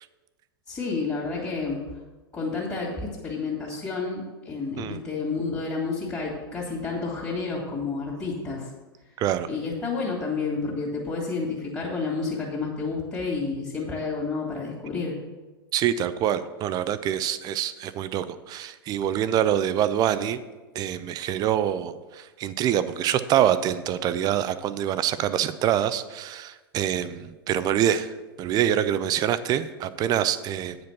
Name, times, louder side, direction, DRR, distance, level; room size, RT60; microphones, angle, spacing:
voice 1, 0.7-1.8 2.3-8.7 9.5-15.1, left 4 dB, 15° left, -5 dB, 2.4 m, -30 dB
voice 2, 9.2-9.5 15.7-20.4 20.7-28.1 28.4-30.8, right 10 dB, 30° right, 14 dB, 0.5 m, -25 dB
9.2 x 5.2 x 5.9 m, 1.2 s
figure-of-eight pair, 100°, 13 cm